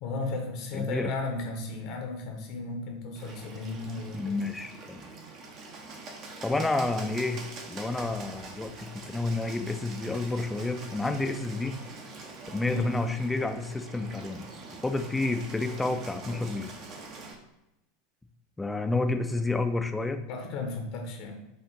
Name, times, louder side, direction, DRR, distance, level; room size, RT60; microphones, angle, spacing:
voice 1, 0.0-4.4 12.7-12.9 20.3-21.4, left 3 dB, 50° left, 3 dB, 0.8 m, -34 dB
voice 2, 0.7-1.1 4.1-5.0 6.4-7.4 7.7-11.8 12.5-14.5 14.8-16.7 18.6-20.2, left 2 dB, 10° left, 7 dB, 0.4 m, -30 dB
Bird, 3.2-17.4, right 3 dB, 40° right, 0.7 m, -44 dB
5.3 x 2.5 x 3.8 m, 0.92 s
figure-of-eight pair, 80°, 0 cm